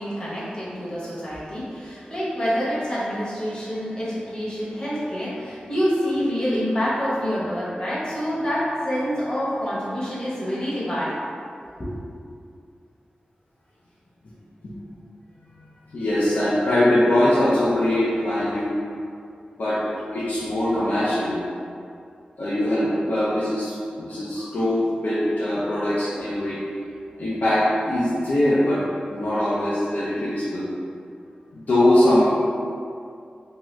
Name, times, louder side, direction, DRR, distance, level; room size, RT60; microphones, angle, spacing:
voice 1, 0.0-11.2 11.8-11.9, equal, 30° left, -8 dB, 0.9 m, -27 dB
voice 2, 15.9-18.8 19.6-19.8 20.1-21.4 22.4-26.6 27.2-28.8 29.1-30.7 31.5-32.2, left 1 dB, 70° left, -11 dB, 0.5 m, -22 dB
2.7 x 2.4 x 3.1 m, 2.4 s
wide cardioid pair, 100°, 3 cm